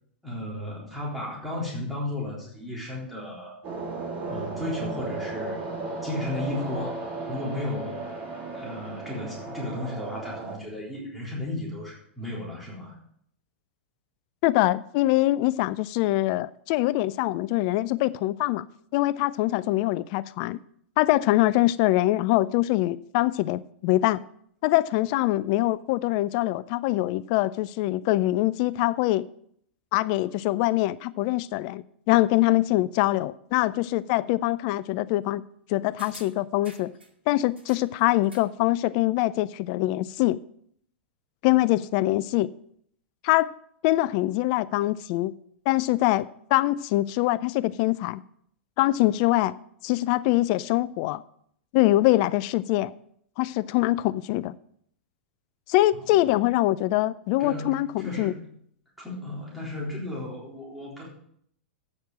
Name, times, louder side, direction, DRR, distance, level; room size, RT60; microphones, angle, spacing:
voice 1, 0.2-3.6 4.3-5.7 6.0-7.0 7.3-8.1 8.5-12.9 56.0-56.4 57.4-58.4 59.0-61.1, left 1 dB, ahead, 3.8 m, -34 dB
sound 1, 3.6-10.6, right 3 dB, 35° right, 2.6 m, -35 dB
voice 2, 14.4-18.7 18.9-20.6 21.0-24.2 24.6-29.2 29.9-35.4 35.7-36.9 37.3-40.4 41.4-42.5 43.2-43.5 43.8-45.3 45.7-48.2 48.8-49.5 49.8-51.2 51.7-52.9 53.4-54.5 55.7-58.3, left 17 dB, 40° left, 0.3 m, -23 dB
sound 2, 36.0-37.1 37.6-38.6 38.9-39.0, right 1 dB, 80° right, 2.3 m, -49 dB
8.6 x 6.6 x 7.4 m
figure-of-eight pair, 100°, 6 cm